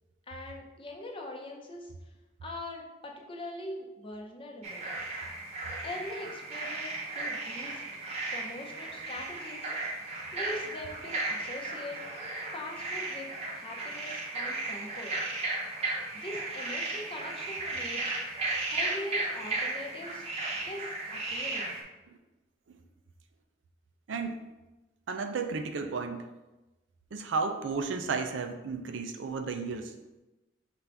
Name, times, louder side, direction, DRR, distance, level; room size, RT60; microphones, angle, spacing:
voice 1, 0.3-1.9 2.4-4.9 5.8-7.8 8.3-9.7 10.3-12.0 12.5-13.3 13.5-15.1 16.1-18.1 18.7-20.3 20.6-21.7, left 1 dB, 30° left, 0 dB, 0.7 m, -42 dB
sound 1, 4.6-21.8, right 2 dB, 35° right, 0.8 m, -35 dB
voice 2, 24.1-24.4 25.1-26.3 27.1-29.9, right 4 dB, 85° right, 6 dB, 0.5 m, -33 dB
5.6 x 2.5 x 3.4 m, 1.1 s
head